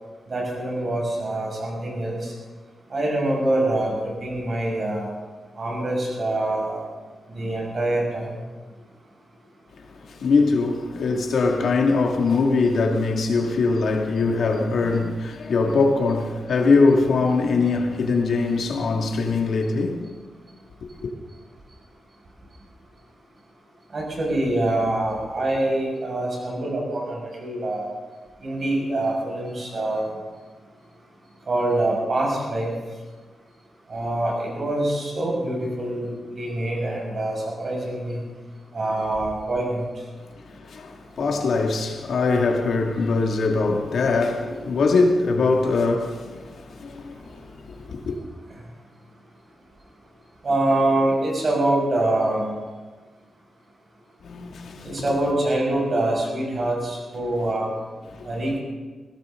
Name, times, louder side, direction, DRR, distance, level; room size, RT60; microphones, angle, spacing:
voice 1, 0.3-2.3 2.9-5.1 5.6-6.8 7.3-8.4 23.9-27.9 28.4-30.1 31.5-32.7 33.9-38.2 38.7-39.8 50.4-52.6 54.8-57.7 58.2-58.6, right 1 dB, 40° right, 5.9 m, -25 dB
voice 2, 9.8-20.1 21.0-21.1 40.3-48.2 54.2-55.1 58.1-58.3, left 3 dB, 70° left, 2.2 m, -22 dB
20.5 x 17.0 x 3.8 m
wide cardioid pair, 160°, 0 cm